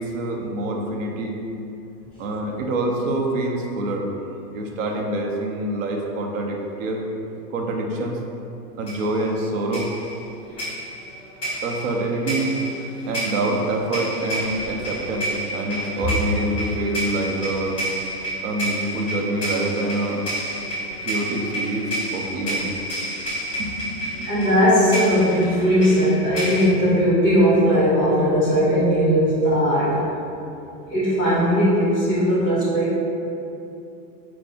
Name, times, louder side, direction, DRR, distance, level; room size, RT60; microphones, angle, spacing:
voice 1, 0.0-1.3 2.2-4.0 4.5-7.1 7.5-8.2 8.7-9.9 11.6-12.5 13.1-17.8 18.4-20.2 21.0-22.7 23.6-24.5, right 2 dB, 55° right, 1 dB, 0.5 m, -26 dB
sound 1, 8.9-9.2 9.7-26.6, right 1 dB, 10° left, 1.0 m, -30 dB
voice 2, 24.2-30.0 30.9-33.0, equal, 10° right, -15 dB, 1.3 m, -18 dB
4.6 x 2.5 x 3.6 m, 2.7 s
hypercardioid pair, 165°, 49 cm